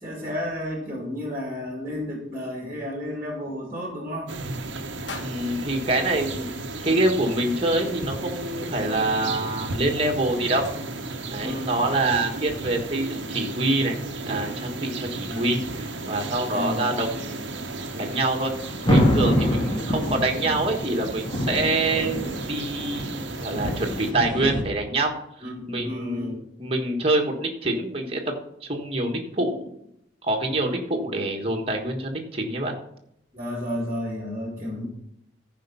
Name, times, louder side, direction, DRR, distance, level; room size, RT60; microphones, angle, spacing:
voice 1, 0.0-4.3 11.3-11.8 15.3-15.6 16.4-16.9 19.3-19.8 25.4-26.4 33.3-34.9, left 1 dB, 15° right, -1 dB, 2.2 m, -32 dB
sound 1, 4.3-24.1, right 3 dB, 70° right, 0.9 m, -35 dB
sound 2, 5.1-7.2, left 3 dB, 75° left, 1.2 m, -43 dB
voice 2, 5.2-10.6 11.3-14.0 14.3-17.6 17.9-18.5 18.9-23.1 23.4-25.1 25.7-28.3 28.7-29.7 30.2-32.7, right 2 dB, 30° right, 0 dB, 1.5 m, -26 dB
sound 3, 5.3-24.6, equal, 25° left, 2.1 m, -31 dB
14.0 x 5.1 x 5.5 m, 0.74 s
head